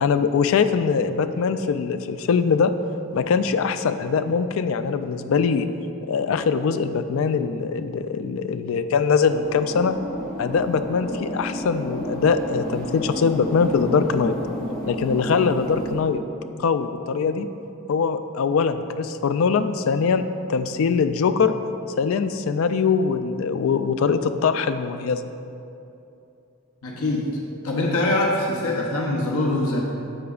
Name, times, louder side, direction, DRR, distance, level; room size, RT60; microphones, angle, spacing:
voice 1, 0.0-2.7 3.1-5.7 6.1-10.0 10.4-14.3 14.9-16.2 16.6-17.5 17.9-21.5 22.0-25.3, left 5 dB, 70° left, 10 dB, 0.3 m, -22 dB
sound 1, 9.3-15.9, equal, 15° left, 1.1 m, -31 dB
voice 2, 26.8-27.3 27.6-29.8, left 2 dB, 85° left, -1 dB, 0.8 m, -23 dB
9.9 x 6.8 x 2.4 m, 2.7 s
head